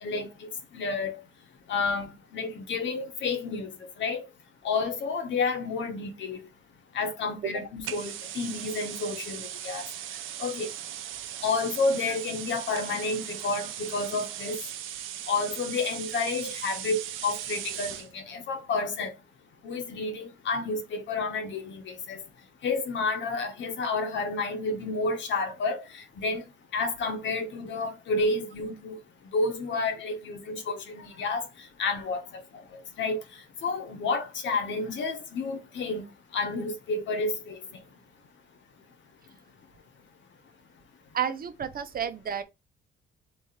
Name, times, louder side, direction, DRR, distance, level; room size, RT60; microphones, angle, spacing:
voice 1, 0.0-1.2 1.7-3.7 4.0-4.3 4.6-6.4 6.9-9.8 10.4-10.7 11.4-14.6 15.3-19.1 19.6-22.2 22.6-26.4 26.7-29.0 29.3-31.4 31.8-32.4 32.7-33.2 33.6-36.0 36.3-37.6, left 3 dB, 70° left, 1.2 m, -30 dB
sound 1, 7.8-18.1, right 11 dB, 85° right, 0.6 m, -38 dB
voice 2, 41.1-42.4, right 8 dB, 50° right, 0.7 m, -31 dB
3.4 x 3.2 x 4.3 m
cardioid pair, 90°, 20 cm